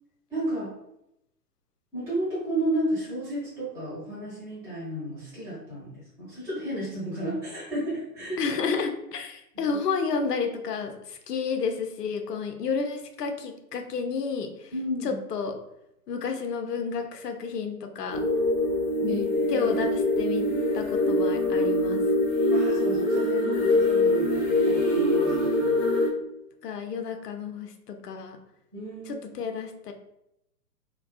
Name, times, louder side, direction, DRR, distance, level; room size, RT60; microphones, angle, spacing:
voice 1, 0.3-0.7 1.9-8.4 9.5-9.8 14.7-15.2 19.1-19.2 19.5-19.7 22.5-25.8 28.7-29.3, right 1 dB, 5° right, -10 dB, 0.7 m, -33 dB
voice 2, 8.4-14.7 15.0-15.6 16.1-18.2 19.0-20.4 20.7-22.0 26.6-28.4 29.1-29.9, left 5 dB, 80° left, 5 dB, 0.6 m, -31 dB
sound 1, 18.1-26.1, left 1 dB, 30° left, 0.7 m, -24 dB
2.4 x 2.3 x 2.3 m, 0.83 s
figure-of-eight pair, 120°, 47 cm